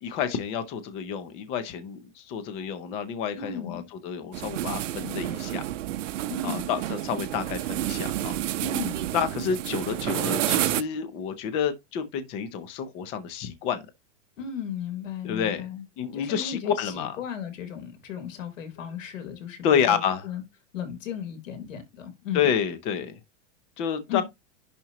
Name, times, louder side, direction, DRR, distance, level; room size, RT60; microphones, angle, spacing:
voice 1, 0.0-5.6 6.4-8.4 9.1-13.9 15.2-15.7 16.0-17.2 19.6-20.3 22.3-23.2 23.8-24.2, left 7 dB, 15° left, 0.5 m, -29 dB
voice 2, 3.4-3.8 6.3-6.7 8.6-9.0 14.4-15.8 16.1-20.4 20.7-22.5 24.1-24.2, left 8 dB, 85° left, 3.8 m, -35 dB
sound 1, 4.3-10.8, right 13 dB, 75° right, 0.8 m, -29 dB
10.5 x 4.2 x 2.9 m
supercardioid pair, 170°, 37 cm